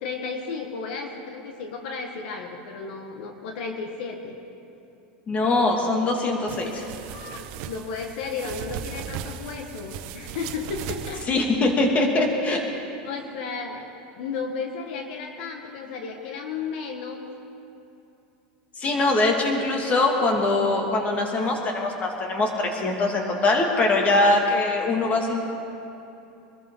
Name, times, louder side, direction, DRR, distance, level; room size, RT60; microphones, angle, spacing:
voice 1, 0.0-4.4 7.1-11.2 13.0-13.9 14.1-17.3, left 5 dB, 70° left, 3 dB, 1.6 m, -33 dB
voice 2, 5.3-6.9 11.3-12.6 18.7-25.4, left 2 dB, 30° left, 1 dB, 2.4 m, -22 dB
sound 1, 6.5-11.2, right 9 dB, 55° right, 1.0 m, -37 dB
24.0 x 13.5 x 3.9 m, 2.8 s
supercardioid pair, 130°, 5 cm